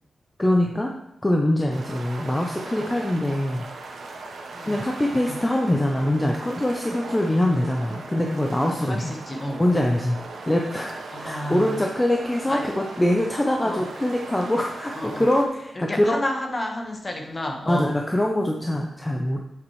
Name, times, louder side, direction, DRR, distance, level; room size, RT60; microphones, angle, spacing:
voice 1, 0.4-0.9 1.2-3.6 4.6-9.1 9.6-10.2 10.5-16.2 17.7-19.4, left 1 dB, 15° left, 1 dB, 0.7 m, -23 dB
sound 1, 1.7-15.4, right 3 dB, 90° right, 1.2 m, -39 dB
voice 2, 4.5-4.8 5.1-5.4 7.3-7.4 8.6-9.6 11.1-11.8 12.5-12.7 13.6-13.9 14.9-15.3 15.8-18.0, left 1 dB, 30° left, 2 dB, 1.4 m, -31 dB
8.8 x 7.8 x 3.3 m, 0.86 s
wide cardioid pair, 120°, 0 cm